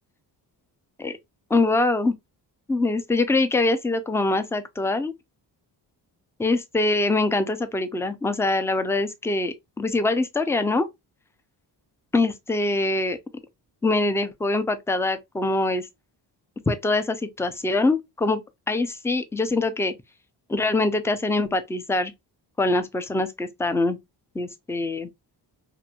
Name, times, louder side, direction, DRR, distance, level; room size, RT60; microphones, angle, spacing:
voice 1, 1.5-2.1 2.7-5.1 6.4-10.9 12.1-13.2 13.8-15.9 16.7-18.4 18.7-19.9 20.5-22.1 22.6-24.0 24.3-25.1, left 2 dB, 5° left, 0.3 m, -23 dB
2.9 x 2.5 x 2.3 m
cardioid pair, 100°, 42 cm